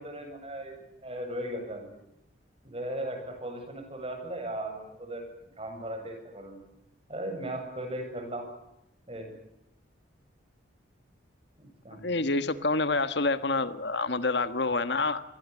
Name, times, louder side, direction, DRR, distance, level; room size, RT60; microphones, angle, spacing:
voice 1, 0.0-2.0 2.6-5.3 5.6-6.6 7.1-8.5 9.1-9.3 11.6-12.1, right 1 dB, 30° right, 5 dB, 8.0 m, -37 dB
voice 2, 12.0-15.2, left 3 dB, 60° left, 11 dB, 1.5 m, -27 dB
28.0 x 21.5 x 9.8 m, 0.84 s
head